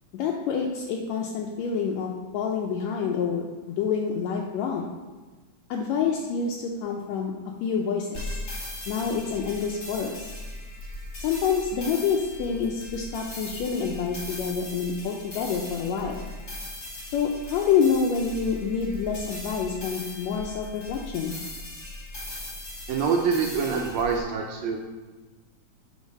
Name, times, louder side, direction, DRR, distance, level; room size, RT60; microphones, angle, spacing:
voice 1, 0.1-5.0 5.7-7.3 7.6-8.4 8.9-10.3 11.2-16.2 17.1-21.3, left 6 dB, 80° left, -1 dB, 1.8 m, -27 dB
sound 1, 8.1-24.2, left 1 dB, 35° left, 1.2 m, -39 dB
voice 2, 22.9-24.8, right 5 dB, 75° right, 1 dB, 1.8 m, -25 dB
7.3 x 3.8 x 5.3 m, 1.2 s
omnidirectional pair, 3.3 m